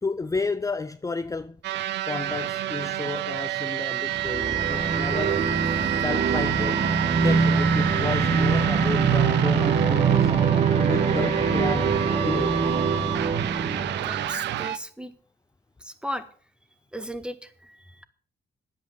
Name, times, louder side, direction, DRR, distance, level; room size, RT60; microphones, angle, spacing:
voice 1, 0.0-1.6 2.0-5.4 6.0-6.8 7.2-10.3 10.7-12.0 12.2-12.7, left 4 dB, 20° left, 0.7 m, -32 dB
sound 1, 1.6-14.8, right 14 dB, 85° right, 0.7 m, -27 dB
sound 2, 4.1-14.6, right 4 dB, 40° right, 1.8 m, -24 dB
voice 2, 14.0-15.1 15.8-16.2 16.9-18.0, equal, 5° right, 1.7 m, -36 dB
10.5 x 8.6 x 7.7 m
cardioid pair, 85°, 18 cm